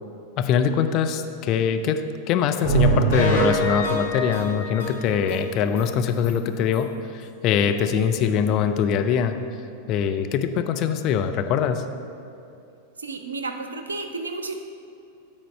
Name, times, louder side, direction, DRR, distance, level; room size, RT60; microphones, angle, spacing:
voice 1, 0.4-2.0 2.3-9.4 9.9-11.8, left 7 dB, 40° left, 7 dB, 0.5 m, -23 dB
sound 1, 2.6-5.4 5.8-5.9 6.2-6.3 6.7-6.8, right 2 dB, 70° left, 1.9 m, -23 dB
voice 2, 13.0-14.5, right 3 dB, 75° right, 6 dB, 0.6 m, -32 dB
9.2 x 4.3 x 5.4 m, 2.7 s
figure-of-eight pair, 90°, 0 cm